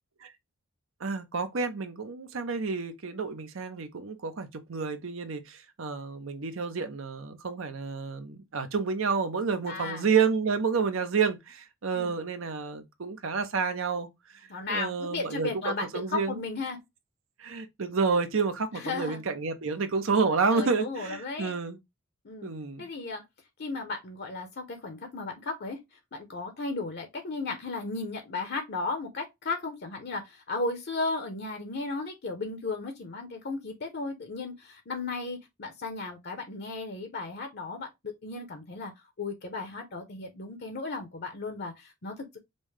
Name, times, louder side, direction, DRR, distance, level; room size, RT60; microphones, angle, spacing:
voice 1, 1.0-14.1 14.7-16.4 17.4-21.8 22.4-22.9, right 5 dB, 70° right, 0.7 m, -29 dB
voice 2, 9.7-10.1 11.9-12.1 14.5-16.8 18.7-19.2 20.5-21.5 22.2-22.5 22.8-23.2 23.6-25.8 26.1-38.9 39.2-42.4, left 3 dB, 55° left, 0.7 m, -35 dB
5.3 x 2.1 x 3.3 m
head